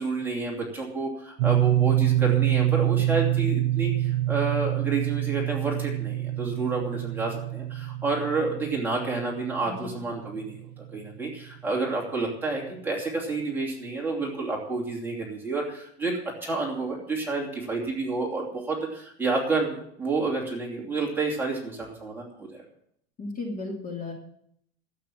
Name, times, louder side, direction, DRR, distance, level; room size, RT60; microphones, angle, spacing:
voice 1, 0.0-16.1 16.4-22.6, right 3 dB, 5° right, -3 dB, 2.9 m, -29 dB
sound 1, 1.4-11.3, right 15 dB, 70° right, 0.6 m, -26 dB
voice 2, 23.2-24.1, left 3 dB, 25° left, 1 dB, 2.7 m, -34 dB
12.5 x 8.3 x 7.3 m, 0.67 s
supercardioid pair, 150°, 32 cm